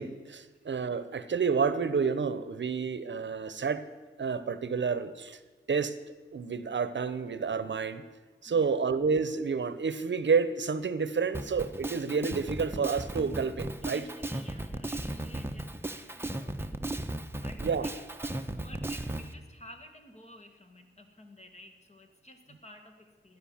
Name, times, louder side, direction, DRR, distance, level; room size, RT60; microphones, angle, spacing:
voice 1, 0.0-3.8 4.2-5.4 5.7-6.0 6.3-8.0 8.4-14.0 17.6-17.9, right 5 dB, 65° right, 13 dB, 0.9 m, -29 dB
voice 2, 8.5-8.8 13.8-16.8 17.4-23.4, equal, 35° left, 5 dB, 2.1 m, -52 dB
Drum kit, 11.3-19.3, right 1 dB, 10° right, 1.0 m, -36 dB
16.0 x 11.5 x 7.2 m, 1.4 s
wide cardioid pair, 95°, 20 cm